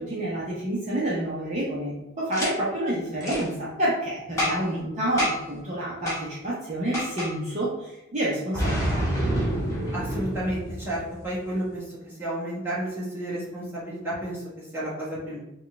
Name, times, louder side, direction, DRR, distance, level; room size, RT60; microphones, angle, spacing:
voice 1, 0.0-9.1, right 1 dB, 35° right, -7 dB, 0.8 m, -29 dB
Boom, 2.3-2.5 3.2-3.4 4.4-4.8 5.2-5.5 6.1-6.2 6.9-7.3 8.5-11.2, equal, 15° left, 1.0 m, -27 dB
voice 2, 9.9-15.4, right 1 dB, 10° right, -9 dB, 1.5 m, -32 dB
4.4 x 2.3 x 3.2 m, 0.95 s
head